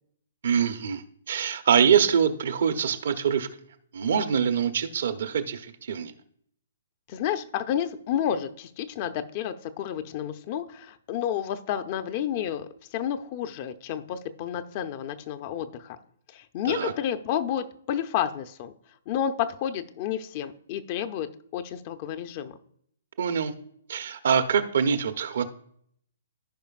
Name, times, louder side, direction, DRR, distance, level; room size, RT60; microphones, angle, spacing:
voice 1, 0.4-3.5 3.9-6.1 16.7-16.9 23.2-23.5 23.9-25.5, right 7 dB, 65° right, 10 dB, 0.8 m, -24 dB
voice 2, 7.1-16.0 16.3-18.7 19.1-22.6, left 9 dB, 40° left, 10 dB, 0.6 m, -30 dB
15.0 x 5.1 x 2.4 m, 0.66 s
hypercardioid pair, 130°, 0 cm